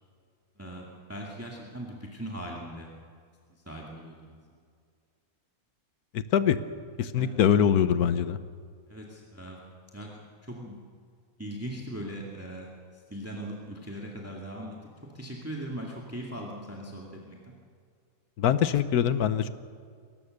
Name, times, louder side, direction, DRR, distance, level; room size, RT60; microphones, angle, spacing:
voice 1, 0.6-2.9 3.7-4.4 7.1-7.3 8.9-9.6 9.9-10.8 11.4-17.5, right 1 dB, 10° right, -2 dB, 2.2 m, -40 dB
voice 2, 6.1-6.6 7.0-8.4 18.4-19.5, left 9 dB, 80° left, 13 dB, 1.4 m, -23 dB
22.0 x 18.5 x 6.6 m, 2.2 s
omnidirectional pair, 1.6 m